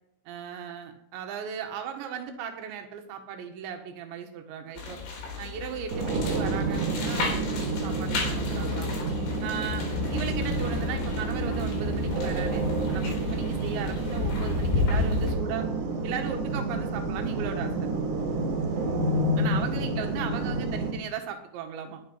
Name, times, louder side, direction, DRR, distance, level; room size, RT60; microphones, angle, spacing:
voice 1, 0.3-5.0 5.4-8.9 9.4-9.9 10.1-15.7 16.0-17.9 19.4-22.0, right 7 dB, 90° right, 4 dB, 3.9 m, -37 dB
sound 1, 4.8-15.3, left 4 dB, 85° left, 6.3 m, -32 dB
sound 2, 5.9-20.9, right 2 dB, 50° right, 3.5 m, -29 dB
22.0 x 10.0 x 5.6 m, 0.72 s
omnidirectional pair, 5.0 m